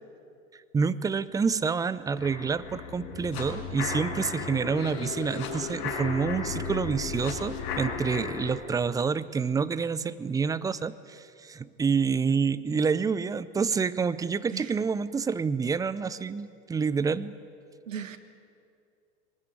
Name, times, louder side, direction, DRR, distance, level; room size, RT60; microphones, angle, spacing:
voice 1, 0.5-17.4, right 5 dB, 10° right, 16 dB, 0.5 m, -28 dB
sound 1, 2.2-8.5, left 4 dB, 55° left, 5.2 m, -34 dB
voice 2, 17.9-18.2, right 8 dB, 85° right, 10 dB, 1.6 m, -37 dB
23.0 x 20.0 x 8.5 m, 2.5 s
hypercardioid pair, 105°, 38 cm